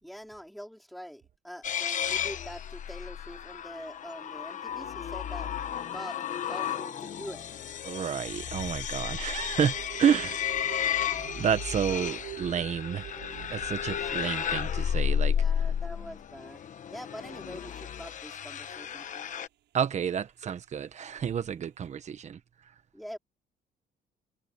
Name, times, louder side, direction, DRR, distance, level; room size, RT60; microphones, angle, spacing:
voice 1, 0.0-5.5 5.9-6.2 6.5-7.5 13.9-14.7 15.3-16.6 16.9-19.3 22.9-23.2, equal, ahead, 4.8 m, -44 dB
sound 1, 1.6-19.5, left 9 dB, 45° left, 1.2 m, -33 dB
voice 2, 7.8-10.4 10.9-11.0 11.4-13.1 13.5-15.3 19.7-22.4, right 8 dB, 40° right, 1.3 m, -30 dB
sound 2, 8.3-16.4, right 13 dB, 80° right, 6.7 m, -45 dB
cardioid pair, 160°, 19 cm